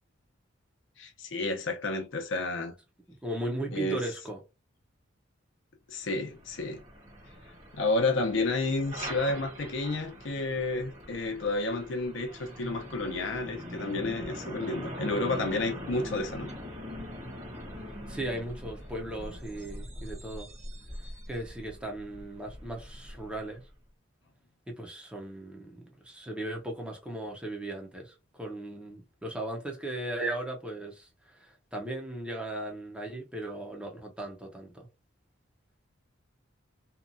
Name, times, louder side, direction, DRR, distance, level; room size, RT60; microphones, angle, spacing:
voice 1, 1.0-2.7 3.7-4.0 5.9-6.8 7.7-16.5, left 2 dB, 65° left, 0.6 m, -31 dB
voice 2, 3.1-4.4 18.1-20.5 21.3-23.6 24.7-34.9, right 1 dB, 5° right, 0.5 m, -37 dB
Truck, 6.1-23.8, equal, 35° right, 1.0 m, -42 dB
2.8 x 2.3 x 2.5 m
head